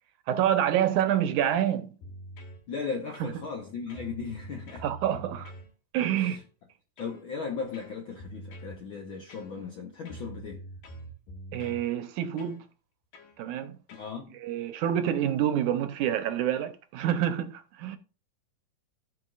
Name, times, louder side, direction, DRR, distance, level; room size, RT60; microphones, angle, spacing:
voice 1, 0.3-2.0 4.8-5.5 5.9-6.4 11.5-12.6 13.4-13.8 14.4-18.0, right 10 dB, 75° right, 2.2 m, -27 dB
sound 1, 2.0-2.6 3.1-3.6 3.9-5.7 6.2-6.5 7.0-7.2 7.7-8.8 9.3-9.8 10.1-11.9 12.4-12.6 13.1-13.4 13.9-14.1, right 1 dB, 85° left, 3.6 m, -45 dB
voice 2, 2.7-4.8 6.1-6.4 7.0-10.6 13.9-14.3, left 5 dB, 65° left, 1.2 m, -37 dB
16.5 x 5.7 x 2.5 m
omnidirectional pair, 3.7 m